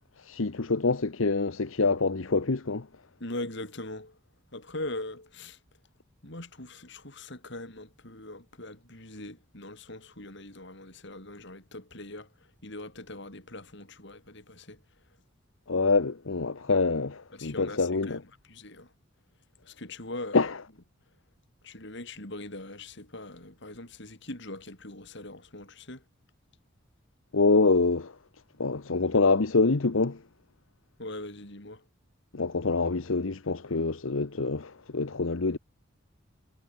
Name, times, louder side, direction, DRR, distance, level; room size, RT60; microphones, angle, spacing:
voice 1, 0.2-2.9 15.7-18.2 20.3-20.6 27.3-28.1 28.6-30.2 32.3-35.6, left 3 dB, 75° left, 1.0 m, -26 dB
voice 2, 3.2-4.2 4.5-5.6 6.2-12.3 12.6-14.8 17.3-18.2 18.5-18.9 19.6-20.5 21.6-26.0 31.0-31.8, left 2 dB, 60° left, 5.3 m, -41 dB
head